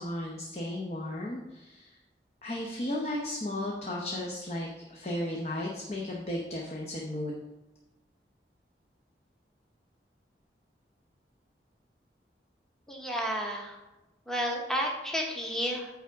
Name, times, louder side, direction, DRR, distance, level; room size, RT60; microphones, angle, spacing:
voice 1, 0.0-1.9 2.4-7.3, left 1 dB, 35° left, -2 dB, 0.8 m, -35 dB
voice 2, 12.9-13.8 14.3-15.9, equal, 5° left, 0 dB, 0.9 m, -31 dB
9.1 x 3.5 x 6.0 m, 1.0 s
head